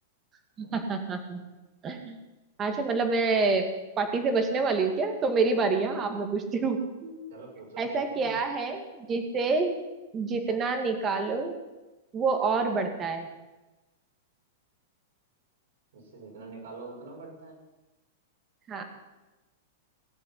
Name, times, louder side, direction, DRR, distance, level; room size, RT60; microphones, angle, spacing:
voice 1, 0.6-1.4 1.8-2.2 2.6-3.7 4.0-7.2 7.8-9.7 10.1-11.5 12.1-13.3 18.7-18.8, right 4 dB, 20° right, 6 dB, 2.1 m, -27 dB
voice 2, 7.3-8.4 15.9-17.6, right 3 dB, 75° right, -3 dB, 7.0 m, -45 dB
18.0 x 7.6 x 9.8 m, 1.1 s
supercardioid pair, 160°, 0 cm